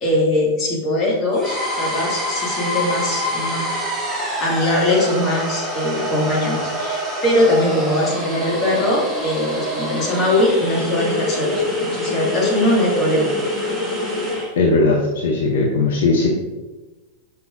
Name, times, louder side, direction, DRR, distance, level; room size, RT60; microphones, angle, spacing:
voice 1, 0.0-3.7 4.4-11.5 11.9-13.3, left 1 dB, 25° left, -3 dB, 2.2 m, -21 dB
sound 1, 1.3-14.5, left 1 dB, 5° left, 2.0 m, -25 dB
voice 2, 14.6-16.3, left 3 dB, 60° left, -1 dB, 0.9 m, -18 dB
6.0 x 5.5 x 3.8 m, 1.2 s
figure-of-eight pair, 90°, 0 cm